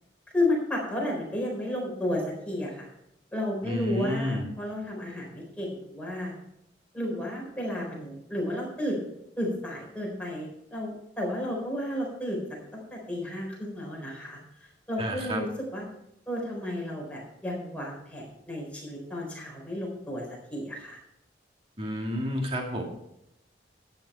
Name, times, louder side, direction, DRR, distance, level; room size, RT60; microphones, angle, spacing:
voice 1, 0.3-2.9 3.3-6.3 6.9-9.0 9.4-12.4 12.7-15.5 15.7-15.8 16.3-21.0, left 1 dB, 5° left, -3 dB, 4.1 m, -32 dB
voice 2, 3.6-4.5 15.0-15.4 21.8-22.8, equal, 30° right, 1 dB, 2.4 m, -30 dB
12.5 x 9.7 x 4.4 m, 0.80 s
head